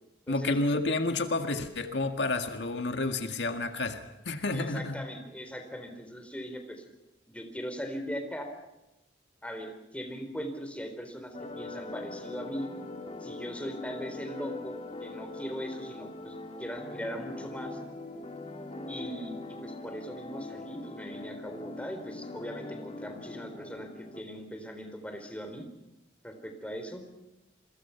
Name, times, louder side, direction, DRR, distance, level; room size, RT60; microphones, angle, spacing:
voice 1, 0.3-5.0, left 2 dB, 75° left, 6 dB, 1.9 m, -30 dB
voice 2, 4.5-6.8 7.3-8.5 9.4-12.7 13.2-17.8 18.9-25.6 26.2-27.0, equal, 5° left, 5 dB, 3.9 m, -39 dB
sound 1, 11.3-24.2, left 2 dB, 35° left, 2.8 m, -42 dB
28.5 x 23.0 x 5.9 m, 0.96 s
head